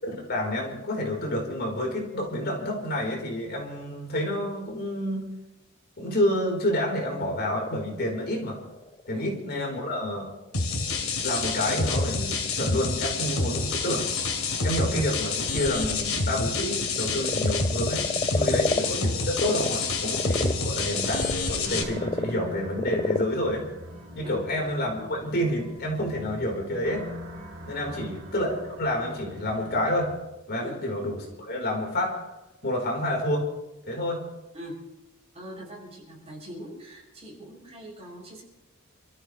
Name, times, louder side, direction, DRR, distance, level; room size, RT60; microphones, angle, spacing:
voice 1, 0.2-5.3 6.0-8.6 9.1-10.3 11.2-14.1 14.6-23.6 24.1-27.1 27.7-30.1 30.5-32.2 32.6-33.5 33.9-34.2, left 1 dB, 50° left, 0 dB, 4.3 m, -29 dB
Frog, 7.0-19.7 20.0-24.7, left 3 dB, 20° left, 0.5 m, -33 dB
sound 1, 10.5-21.8, left 3 dB, 75° left, 2.5 m, -28 dB
sound 2, 21.6-30.2, left 1 dB, 65° right, 2.6 m, -42 dB
voice 2, 27.8-28.1 30.6-30.8 34.5-34.9 35.3-38.4, right 1 dB, 30° right, -4 dB, 7.2 m, -42 dB
29.0 x 14.5 x 3.3 m, 0.98 s
head